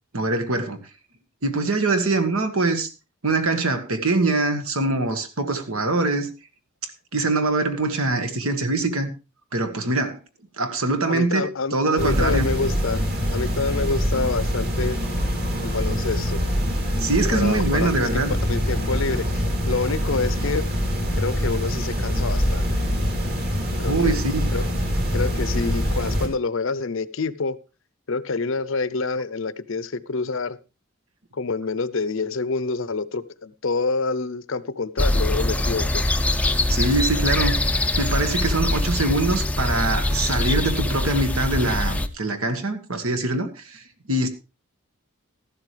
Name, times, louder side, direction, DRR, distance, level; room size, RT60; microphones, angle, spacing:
voice 1, 0.1-0.8 1.4-2.9 3.2-6.3 7.1-9.1 9.5-10.2 10.6-11.4 11.7-12.5 17.0-18.3 23.8-24.5 36.7-37.6 38.0-44.3, right 2 dB, 75° right, 1.7 m, -23 dB
voice 2, 11.0-13.0 13.3-15.0 15.6-16.4 17.3-17.9 18.3-20.7 21.2-22.7 23.8-24.6 25.1-27.6 28.1-30.6 31.3-36.0, left 4 dB, 60° left, 0.7 m, -27 dB
sound 1, 12.0-26.3, equal, 45° right, 3.1 m, -24 dB
sound 2, 35.0-42.1, left 1 dB, 5° left, 0.5 m, -23 dB
14.0 x 12.0 x 3.3 m
head